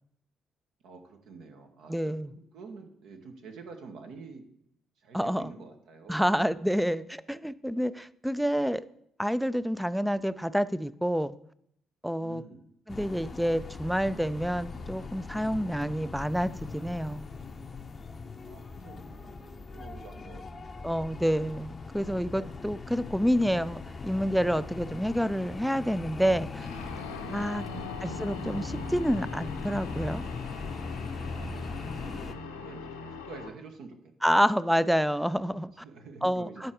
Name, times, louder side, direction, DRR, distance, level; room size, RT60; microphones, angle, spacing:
voice 1, 0.8-4.5 5.0-6.3 12.2-12.7 18.4-21.1 27.4-27.9 31.3-34.4 35.8-36.6, right 4 dB, 60° right, 5 dB, 1.0 m, -48 dB
voice 2, 1.9-2.3 5.1-5.5 6.1-8.8 9.2-11.3 12.0-12.4 12.9-17.2 20.8-26.7 27.3-27.6 28.0-30.2 34.2-35.7 36.2-36.7, equal, ahead, 16 dB, 0.4 m, -28 dB
sound 1, 12.9-32.3, left 4 dB, 35° left, 0.7 m, -40 dB
sound 2, 26.6-33.5, left 4 dB, 80° left, 0.8 m, -40 dB
9.4 x 4.4 x 4.9 m, 0.71 s
figure-of-eight pair, 45°, 0 cm